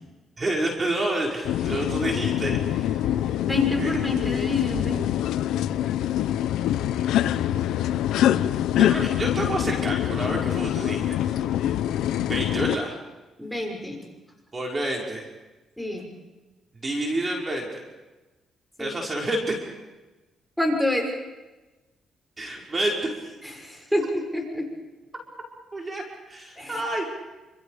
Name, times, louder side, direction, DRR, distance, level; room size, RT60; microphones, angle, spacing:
voice 1, 0.4-3.3 3.8-4.0 7.0-7.2 8.8-11.4 12.2-13.0 14.5-15.3 16.7-17.8 18.8-19.5 22.4-23.3 25.7-27.1, right 1 dB, 30° right, -1 dB, 5.6 m, -29 dB
sound 1, 1.4-12.8, left 11 dB, 85° left, 0.8 m, -25 dB
voice 2, 3.4-5.1 13.4-14.0 15.8-16.1 18.8-18.9 20.6-21.1 23.4-24.7 26.6-26.8, left 2 dB, ahead, 1 dB, 6.3 m, -27 dB
29.0 x 27.0 x 5.1 m, 1.1 s
cardioid pair, 90°, 0 cm